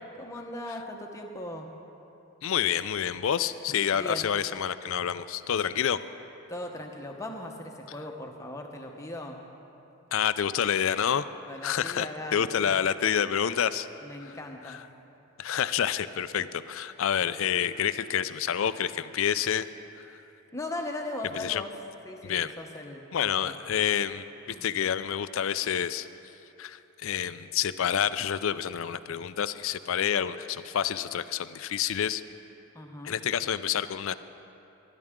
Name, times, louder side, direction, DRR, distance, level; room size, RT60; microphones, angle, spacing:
voice 1, 0.2-1.7 3.9-4.3 6.5-9.4 11.5-12.8 14.0-14.8 20.5-21.7 22.0-23.5 24.5-24.6 32.7-33.2, left 1 dB, 15° left, 1 dB, 1.0 m, -38 dB
voice 2, 2.4-6.0 10.1-11.2 11.6-13.9 14.2-14.4 14.7-14.8 15.4-19.7 21.4-21.6 22.2-22.5 23.1-24.2 24.6-26.1 26.6-32.2 33.0-34.1, left 8 dB, 65° left, 14 dB, 0.4 m, -28 dB
22.5 x 11.0 x 3.7 m, 2.9 s
head